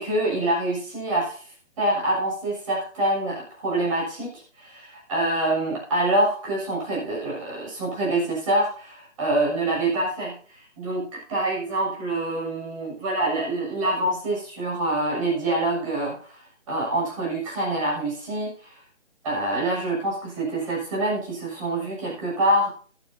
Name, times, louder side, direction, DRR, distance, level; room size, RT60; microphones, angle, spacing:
voice 1, 0.0-16.4 16.7-18.8 19.2-22.7, right 1 dB, 25° right, -3 dB, 6.8 m, -26 dB
14.5 x 12.0 x 2.8 m, 0.41 s
figure-of-eight pair, 150°, 37 cm